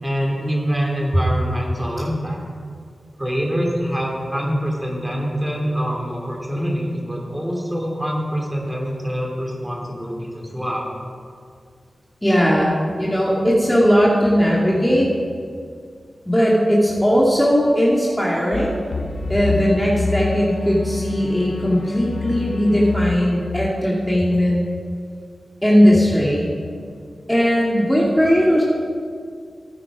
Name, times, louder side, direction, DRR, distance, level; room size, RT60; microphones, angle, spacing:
voice 1, 0.0-2.4 3.2-10.9, equal, 15° right, -1 dB, 3.1 m, -25 dB
voice 2, 12.2-15.1 16.3-18.8 19.3-24.6 25.6-26.5 27.3-28.6, equal, 5° left, -5 dB, 2.5 m, -18 dB
sound 1, 18.5-24.2, left 4 dB, 70° left, 0.9 m, -28 dB
14.5 x 8.8 x 5.0 m, 2.2 s
cardioid pair, 40°, 0 cm